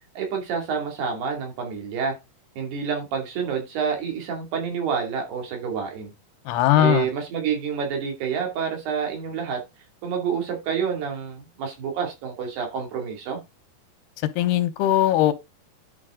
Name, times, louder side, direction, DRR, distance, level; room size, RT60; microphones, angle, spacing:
voice 1, 0.2-2.1 2.6-6.1 6.7-9.6 10.0-13.4, right 6 dB, 85° right, 4.6 m, -28 dB
voice 2, 6.5-7.1 14.4-15.3, left 13 dB, 90° left, 2.8 m, -19 dB
10.5 x 5.1 x 3.7 m
omnidirectional pair, 4.5 m